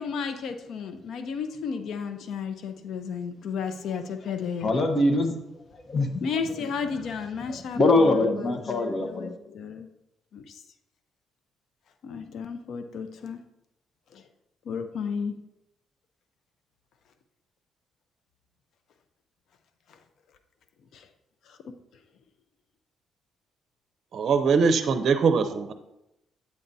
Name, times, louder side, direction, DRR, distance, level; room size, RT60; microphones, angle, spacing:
voice 1, 0.0-4.7 6.2-9.9 10.3-10.6 12.0-13.4 14.1-14.2 14.7-15.4 20.9-21.1 21.5-21.6, left 6 dB, 70° left, 7 dB, 0.6 m, -33 dB
voice 2, 4.6-5.4 5.7-6.1 7.5-9.3, left 2 dB, 40° left, 4 dB, 1.0 m, -23 dB
voice 3, 24.1-25.7, right 5 dB, 60° right, 9 dB, 0.6 m, -22 dB
8.6 x 8.4 x 2.7 m, 0.87 s
cardioid pair, 90°, 0 cm